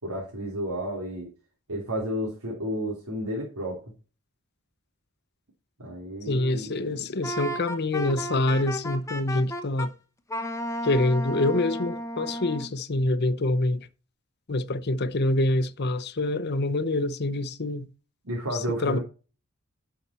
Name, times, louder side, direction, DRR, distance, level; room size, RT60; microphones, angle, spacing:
voice 1, 0.0-1.3 1.7-3.8 5.8-7.0 18.2-19.0, equal, 90° right, 3.2 m, -32 dB
voice 2, 6.3-9.9 10.8-13.9 14.5-17.9 18.8-19.0, left 2 dB, 50° left, 0.8 m, -26 dB
Wind instrument woodwind instrument, 7.2-9.9 10.3-12.7, equal, 15° left, 1.0 m, -33 dB
11.0 x 5.9 x 4.3 m
head